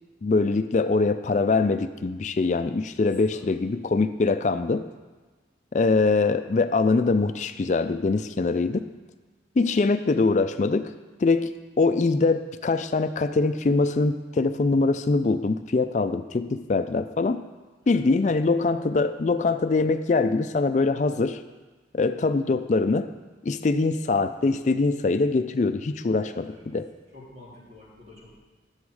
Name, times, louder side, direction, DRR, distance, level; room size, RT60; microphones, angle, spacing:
voice 1, 0.2-4.8 5.7-8.8 9.6-10.9 11.2-17.4 17.9-21.4 21.9-23.1 23.4-26.9, left 3 dB, 40° left, 10 dB, 0.4 m, -23 dB
voice 2, 26.2-26.7 27.1-28.3, left 2 dB, 65° right, -7 dB, 3.5 m, -48 dB
10.0 x 7.1 x 4.8 m, 1.3 s
head